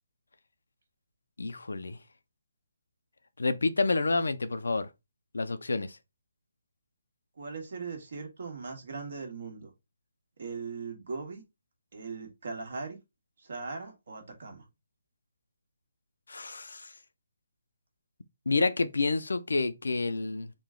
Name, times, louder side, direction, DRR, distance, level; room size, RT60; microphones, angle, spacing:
voice 1, 1.4-2.0 3.4-4.9 5.3-6.0 16.3-16.9 18.5-20.5, left 3 dB, 90° left, 0.5 m, -29 dB
voice 2, 7.4-9.7 10.4-11.4 11.9-13.0 13.4-14.6, right 4 dB, 60° right, 1.4 m, -39 dB
3.8 x 2.2 x 3.6 m
hypercardioid pair, 160°, 0 cm